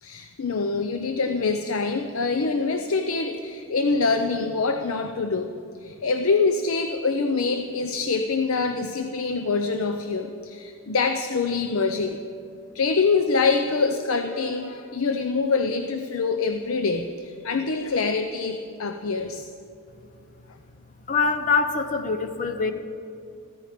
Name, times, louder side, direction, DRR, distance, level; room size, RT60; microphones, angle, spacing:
voice 1, 0.0-5.5 5.8-12.2 12.7-19.5, left 4 dB, 70° left, 7 dB, 0.6 m, -25 dB
voice 2, 21.1-22.7, left 4 dB, 35° left, 8 dB, 0.7 m, -24 dB
14.5 x 13.5 x 5.1 m, 2.6 s
head